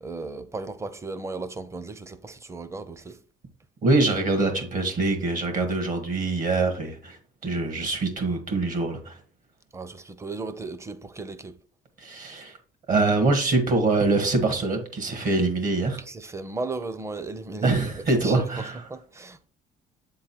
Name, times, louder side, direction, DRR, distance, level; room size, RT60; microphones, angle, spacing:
voice 1, 0.0-3.2 9.7-11.6 16.1-19.4, right 3 dB, 15° right, 0.7 m, -36 dB
voice 2, 3.8-7.2 7.4-9.2 12.0-12.6 12.9-16.0 17.6-18.8, right 3 dB, 55° right, 1.8 m, -24 dB
7.5 x 3.8 x 4.3 m
cardioid pair, 110°, 17 cm